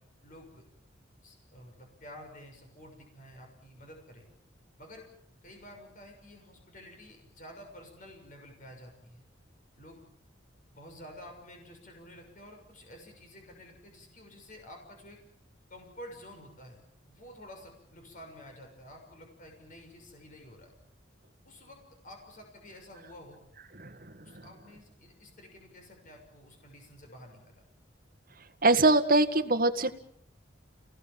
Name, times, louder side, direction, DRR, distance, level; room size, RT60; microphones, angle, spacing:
voice 1, 0.2-0.6 1.2-4.3 4.8-5.1 5.4-9.2 9.8-10.0 10.7-15.2 15.7-16.8 17.1-20.7 21.4-21.8 22.0-23.4 24.2-27.6, left 1 dB, 45° left, 3 dB, 6.6 m, -50 dB
voice 2, 23.7-24.4 28.6-29.9, right 2 dB, 45° right, 8 dB, 1.8 m, -24 dB
29.5 x 19.5 x 7.6 m, 0.71 s
head